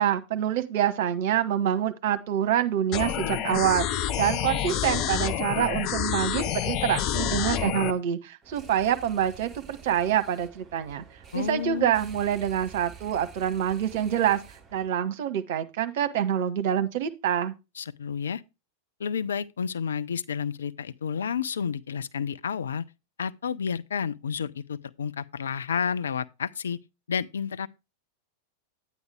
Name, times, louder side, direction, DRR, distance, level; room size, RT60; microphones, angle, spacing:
voice 1, 0.0-11.0 11.3-14.4 14.7-17.5, right 10 dB, 50° right, 1.1 m, -26 dB
sound 1, 2.9-7.9, left 10 dB, 40° left, 0.8 m, -28 dB
sound 2, 8.4-14.9, right 6 dB, 10° right, 2.5 m, -49 dB
voice 2, 11.3-11.9 17.8-18.4 19.0-22.9 23.2-26.8 27.1-27.7, left 7 dB, 65° left, 0.5 m, -30 dB
9.3 x 9.3 x 3.4 m
figure-of-eight pair, 90°, 0 cm